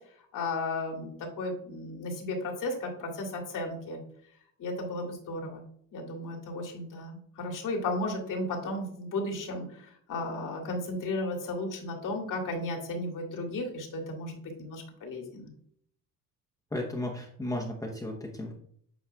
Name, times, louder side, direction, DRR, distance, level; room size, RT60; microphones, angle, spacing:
voice 1, 0.3-4.0 4.6-5.6 5.9-15.5, left 2 dB, 65° left, 1 dB, 2.1 m, -34 dB
voice 2, 16.7-18.5, left 1 dB, 10° left, -2 dB, 0.9 m, -34 dB
8.6 x 4.7 x 2.3 m, 0.63 s
cardioid pair, 130°, 35 cm